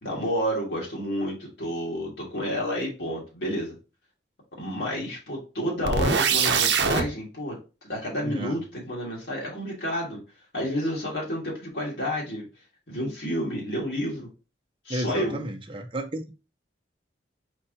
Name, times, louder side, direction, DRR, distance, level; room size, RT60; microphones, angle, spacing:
voice 1, 0.0-3.7 4.6-7.6 7.9-10.2 10.5-12.4 12.9-14.3 14.8-15.4, equal, 70° left, 1.8 m, -30 dB
sound 1, 5.8-7.0, right 5 dB, 75° right, 0.7 m, -22 dB
voice 2, 8.2-8.6 14.9-16.3, right 1 dB, 30° right, 0.6 m, -32 dB
4.5 x 4.2 x 2.7 m
head